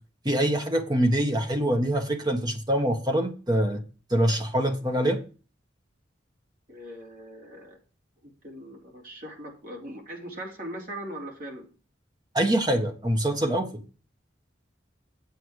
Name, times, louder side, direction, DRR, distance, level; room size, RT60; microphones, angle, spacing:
voice 1, 0.2-3.8 4.1-5.2 12.3-13.8, right 1 dB, 20° right, 4 dB, 1.4 m, -24 dB
voice 2, 6.7-7.8 8.2-11.7, right 1 dB, 45° right, 0 dB, 3.2 m, -40 dB
8.3 x 8.2 x 4.8 m, 0.36 s
head